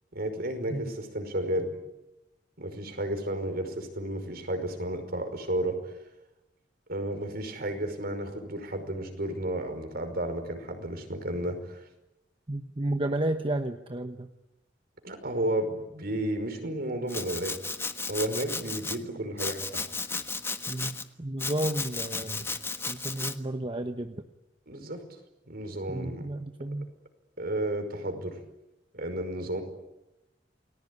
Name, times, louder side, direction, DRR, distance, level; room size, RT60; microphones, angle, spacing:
voice 1, 0.1-1.7 2.6-5.9 6.9-11.9 15.0-17.7 18.1-19.8 24.7-25.0 25.5-26.3 27.4-28.4 28.9-29.6, right 1 dB, 55° right, 7 dB, 5.3 m, -32 dB
voice 2, 12.5-14.3 20.7-22.5 22.9-24.3 25.9-26.9, right 1 dB, 30° right, 6 dB, 1.1 m, -32 dB
Domestic sounds home sounds, 17.1-19.0 19.4-21.0 21.4-23.3, left 4 dB, 15° left, 1.4 m, -34 dB
29.5 x 20.0 x 10.0 m, 0.94 s
head